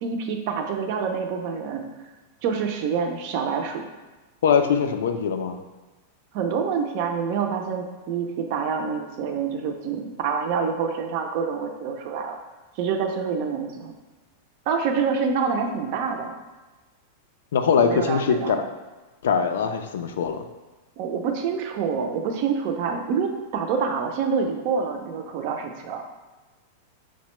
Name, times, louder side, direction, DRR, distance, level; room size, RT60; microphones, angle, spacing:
voice 1, 0.0-1.8 2.4-3.9 6.3-12.4 12.8-13.9 14.7-16.3 17.8-18.6 21.0-26.0, right 6 dB, 40° right, 4 dB, 0.4 m, -27 dB
voice 2, 4.4-5.6 17.5-18.6 19.2-20.4, left 6 dB, 85° left, 7 dB, 0.4 m, -22 dB
5.7 x 2.1 x 3.0 m, 1.2 s
supercardioid pair, 170°, 0 cm